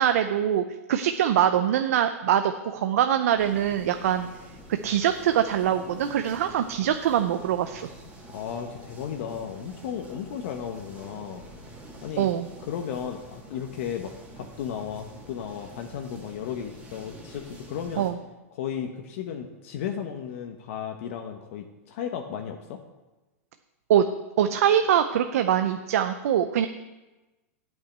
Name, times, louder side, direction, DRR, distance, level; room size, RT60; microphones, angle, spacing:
voice 1, 0.0-4.3 4.8-7.9 12.2-12.5 18.0-18.2 23.9-24.0 24.4-26.7, right 10 dB, 75° right, 8 dB, 0.6 m, -23 dB
sound 1, 3.4-18.1, right 1 dB, 15° right, 2.2 m, -46 dB
voice 2, 8.3-11.4 12.0-12.3 12.6-18.1 18.5-22.8, left 8 dB, 60° left, 3 dB, 1.0 m, -34 dB
9.0 x 5.6 x 8.0 m, 1.1 s
hypercardioid pair, 130°, 8 cm